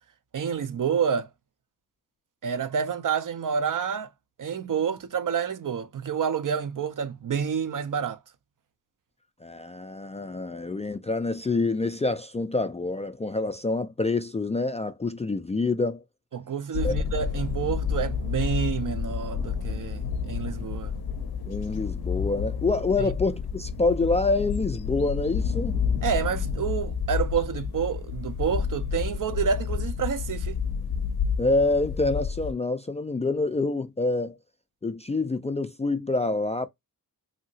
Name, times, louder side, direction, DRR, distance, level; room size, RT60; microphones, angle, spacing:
voice 1, 0.3-1.3 2.4-4.1 4.4-8.2 16.3-20.9 23.0-23.1 26.0-30.6, right 7 dB, 55° right, 0.5 m, -28 dB
voice 2, 9.4-16.0 16.8-17.0 21.4-25.8 31.4-34.4 34.8-36.7, left 3 dB, 20° left, 0.3 m, -27 dB
sound 1, 16.7-32.5, left 6 dB, 70° left, 0.6 m, -30 dB
2.8 x 2.7 x 2.7 m
cardioid pair, 50°, 39 cm